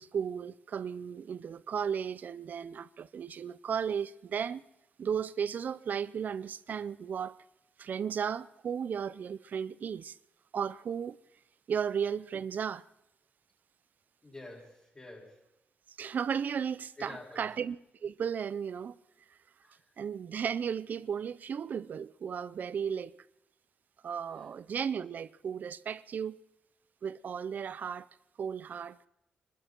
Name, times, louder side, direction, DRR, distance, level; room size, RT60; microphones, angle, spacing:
voice 1, 0.0-4.6 5.0-7.4 7.8-10.2 10.5-11.2 11.7-12.8 16.0-17.8 18.0-19.0 20.0-23.2 24.0-26.4 27.0-28.1 28.4-29.0, right 7 dB, 60° right, 0.6 m, -35 dB
voice 2, 14.2-15.4 17.0-17.5 19.6-19.9 24.3-24.5, left 2 dB, 25° left, 6.3 m, -48 dB
25.0 x 13.0 x 4.5 m
cardioid pair, 95°, 3 cm